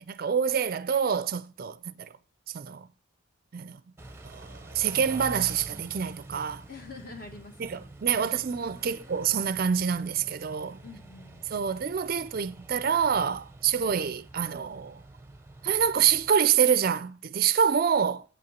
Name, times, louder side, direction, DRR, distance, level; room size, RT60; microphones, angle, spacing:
voice 1, 0.0-2.1 2.5-2.9 3.5-3.8 4.2-6.6 7.6-10.8 11.5-15.0 15.6-18.2, right 7 dB, 45° right, 0.4 m, -26 dB
Car / Idling / Accelerating revving vroom, 4.0-16.3, right 2 dB, 10° right, 0.7 m, -47 dB
voice 2, 6.7-7.8 8.2-8.3 8.9-9.1 10.8-11.4, left 3 dB, 45° left, 1.6 m, -46 dB
8.6 x 5.7 x 7.1 m
head